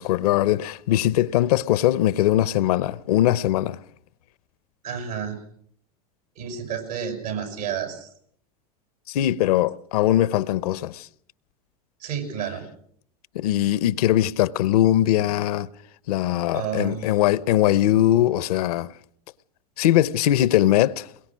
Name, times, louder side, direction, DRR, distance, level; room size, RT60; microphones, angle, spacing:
voice 1, 0.0-3.8 9.1-11.1 13.3-15.7 16.1-18.9 19.8-21.1, left 13 dB, 70° left, 0.8 m, -21 dB
voice 2, 4.8-5.4 6.4-8.1 12.0-12.7 16.5-17.1, right 8 dB, 75° right, 7.6 m, -30 dB
22.5 x 22.0 x 6.2 m
hypercardioid pair, 90°, 20 cm